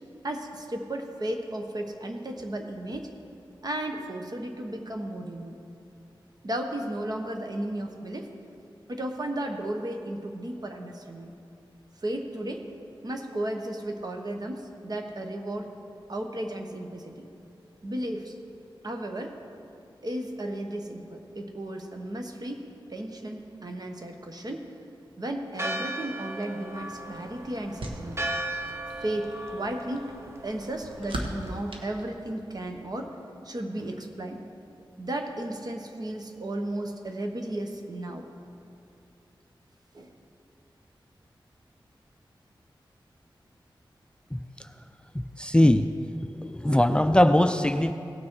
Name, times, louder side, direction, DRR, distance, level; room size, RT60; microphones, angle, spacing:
voice 1, 0.2-3.1 3.6-5.6 6.4-8.3 8.9-11.3 12.0-12.6 13.0-15.7 16.1-17.3 17.8-18.3 18.8-19.4 20.0-22.6 22.9-24.7 25.2-28.3 29.0-30.1 30.4-34.4 35.0-38.3 39.9-40.1, right 1 dB, 50° right, 3 dB, 1.1 m, -34 dB
Church bell, 25.6-31.8, right 1 dB, 30° right, 0.7 m, -37 dB
sound 1, 26.7-32.8, right 1 dB, 80° right, 1.2 m, -41 dB
voice 2, 45.1-45.9 46.4-47.9, left 1 dB, 10° left, 8 dB, 0.3 m, -21 dB
17.0 x 6.2 x 4.6 m, 2.7 s
wide cardioid pair, 75°, 9 cm